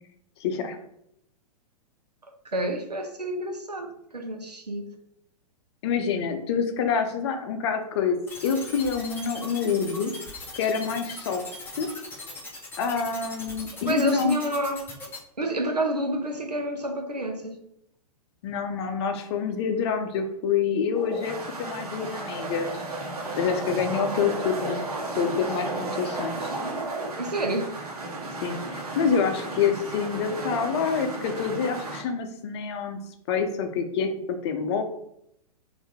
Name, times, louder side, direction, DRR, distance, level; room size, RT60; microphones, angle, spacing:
voice 1, 0.4-0.8 5.8-10.1 10.5-11.4 11.7-11.9 12.8-14.4 18.4-22.8 23.4-24.9 25.2-26.5 28.4-33.0 33.3-34.8, left 6 dB, 45° left, 6 dB, 0.7 m, -27 dB
voice 2, 2.5-4.9 13.8-14.9 15.4-17.6 27.2-27.8, right 1 dB, 90° right, 4 dB, 0.7 m, -29 dB
sound 1, 8.3-15.2, left 3 dB, 10° left, 0.8 m, -39 dB
sound 2, 20.9-32.0, right 2 dB, 70° right, 1.0 m, -33 dB
4.3 x 2.7 x 3.6 m, 0.76 s
figure-of-eight pair, 110°, 20 cm